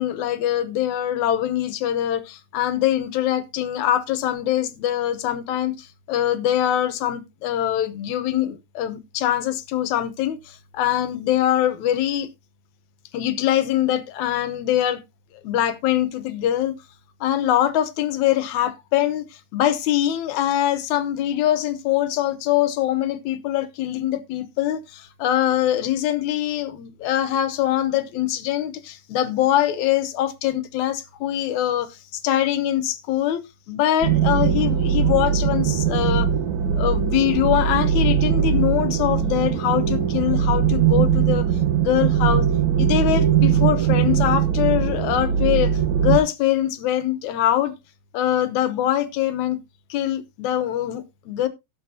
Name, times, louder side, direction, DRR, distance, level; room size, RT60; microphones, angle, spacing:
voice 1, 0.0-12.3 13.1-15.0 15.4-16.7 17.2-19.3 19.5-33.4 33.7-36.3 36.7-41.5 41.8-42.5 42.8-45.7 46.0-47.7 48.1-49.6 49.9-51.5, left 12 dB, 80° left, 2.3 m, -23 dB
sound 1, 34.0-46.2, right 8 dB, 80° right, 2.4 m, -20 dB
17.0 x 6.8 x 2.7 m
omnidirectional pair, 3.3 m